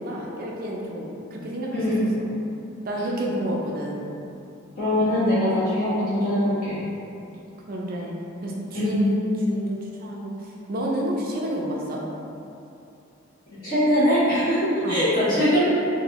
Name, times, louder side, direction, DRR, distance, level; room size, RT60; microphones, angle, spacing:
voice 1, 0.0-1.8 2.8-4.1 7.7-8.1 8.4-12.0 14.8-15.0, equal, 45° right, -2 dB, 0.4 m, -29 dB
voice 2, 4.8-6.8 8.7-9.0 13.6-15.6, left 1 dB, 45° left, -14 dB, 1.2 m, -22 dB
3.0 x 2.6 x 2.8 m, 2.7 s
head